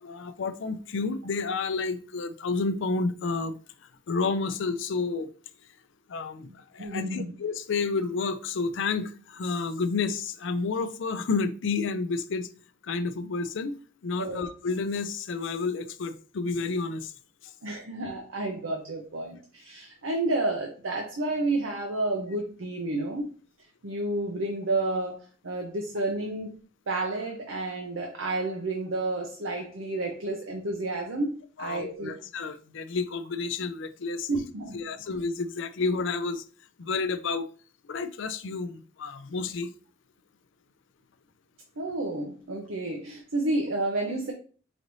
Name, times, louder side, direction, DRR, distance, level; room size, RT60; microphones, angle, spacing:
voice 1, 0.0-3.5 4.1-5.3 6.1-6.5 6.7-12.5 12.8-13.8 14.0-17.1 31.6-34.3 34.7-36.4 36.8-37.5 37.9-39.7, left 4 dB, 70° left, 0.4 m, -30 dB
voice 2, 6.8-7.3 14.2-14.4 17.6-23.4 23.8-26.5 26.9-32.1 34.3-34.8 41.8-44.3, right 2 dB, 85° right, 0.7 m, -30 dB
5.0 x 2.6 x 3.1 m
head